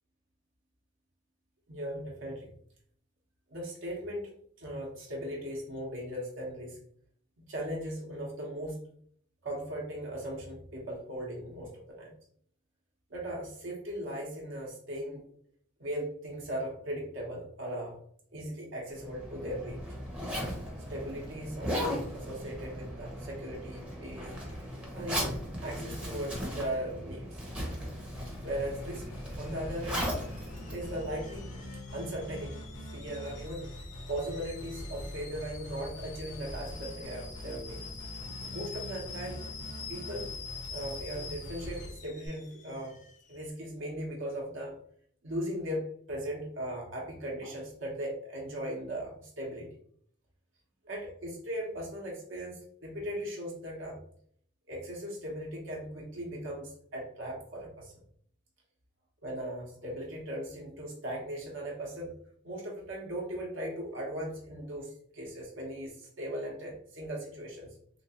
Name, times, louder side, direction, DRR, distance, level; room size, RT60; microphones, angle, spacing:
voice 1, 1.7-2.5 3.5-4.3 4.6-6.8 7.4-8.8 9.4-12.1 13.1-15.2 15.8-18.0 18.3-19.8 20.9-24.3 24.9-27.3 28.4-29.0 29.4-30.1 30.7-31.5 31.9-32.7 32.9-33.7 34.1-37.8 38.5-39.4 39.9-40.3 40.6-43.0 43.3-44.8 45.2-49.7 50.8-54.0 54.7-57.9 59.2-62.1 62.4-67.8, equal, 60° right, -2 dB, 0.8 m, -38 dB
Zipper (clothing), 18.9-31.6, equal, 5° right, 0.6 m, -37 dB
sound 1, 28.1-42.3, equal, 75° left, 1.0 m, -43 dB
Alarm / Boiling, 28.6-43.5, left 5 dB, 35° left, 0.3 m, -47 dB
3.1 x 3.0 x 2.7 m, 0.62 s
head